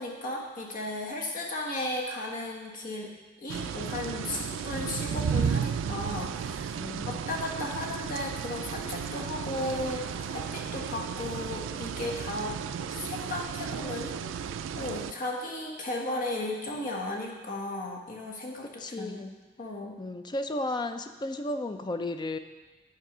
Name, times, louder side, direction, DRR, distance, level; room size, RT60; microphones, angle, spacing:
voice 1, 0.0-3.1 3.4-12.6 12.9-14.5 14.7-19.3 19.6-20.0, left 2 dB, 45° left, -1 dB, 1.4 m, -35 dB
sound 1, 3.5-15.1, right 7 dB, 75° right, 0.3 m, -34 dB
voice 2, 6.7-7.2 18.8-19.3 20.0-22.4, left 2 dB, 25° left, 8 dB, 0.4 m, -34 dB
sound 2, 9.5-11.6, left 1 dB, 70° left, 2.3 m, -48 dB
9.3 x 4.6 x 6.0 m, 1.3 s
head